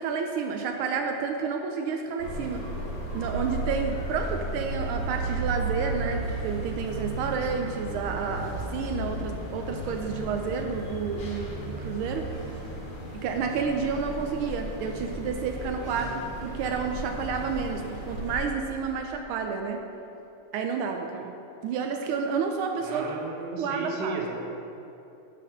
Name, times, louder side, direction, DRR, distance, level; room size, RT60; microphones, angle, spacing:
voice 1, 0.0-2.7 3.1-12.3 13.1-16.1 16.4-19.8 20.5-21.4 21.6-23.1 23.6-24.2, right 5 dB, 85° right, 4 dB, 1.4 m, -30 dB
sound 1, 2.2-18.4, right 1 dB, 85° left, 2.9 m, -34 dB
voice 2, 15.8-16.2 22.8-24.4, right 4 dB, 60° right, 1 dB, 1.4 m, -35 dB
11.5 x 4.2 x 5.5 m, 2.9 s
omnidirectional pair, 2.3 m